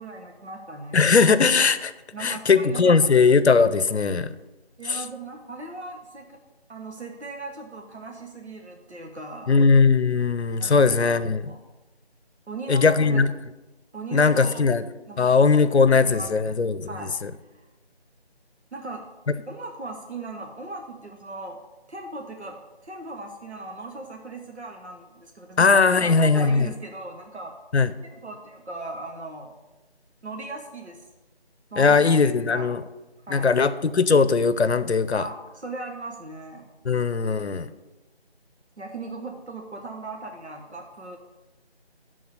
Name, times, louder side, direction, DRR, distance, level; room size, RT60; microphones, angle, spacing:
voice 1, 0.0-1.0 2.1-3.0 4.8-6.4 6.7-9.5 10.6-11.1 11.5-11.6 12.5-13.2 13.9-14.7 15.1-15.3 15.9-16.6 16.8-17.1 18.7-19.1 19.5-21.6 21.9-27.5 28.1-29.5 30.2-31.0 31.7-32.7 33.3-33.5 35.1-36.7 38.8-41.2, right 3 dB, 85° right, 1 dB, 1.3 m, -38 dB
voice 2, 0.9-1.9 2.2-4.3 4.9-5.0 9.5-11.5 12.7-13.3 14.1-14.8 15.2-17.3 25.6-26.7 27.7-27.9 31.8-32.8 33.3-35.2 36.8-37.7, left 4 dB, 80° left, 13 dB, 0.6 m, -19 dB
10.0 x 3.9 x 6.3 m, 1.1 s
figure-of-eight pair, 170°, 33 cm